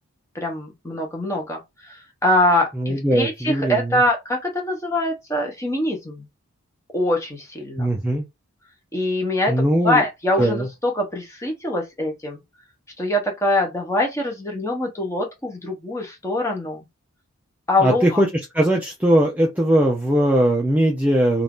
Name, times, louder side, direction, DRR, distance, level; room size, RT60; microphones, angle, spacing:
voice 1, 0.3-6.3 6.9-7.9 8.9-9.5 9.8-12.4 13.0-16.8 17.7-18.2, left 1 dB, 15° left, 0.9 m, -23 dB
voice 2, 2.8-4.0 7.8-8.2 9.5-10.0 10.4-10.7 17.8-18.3 18.5-21.4, right 1 dB, 5° right, 0.4 m, -19 dB
2.7 x 2.4 x 3.5 m
head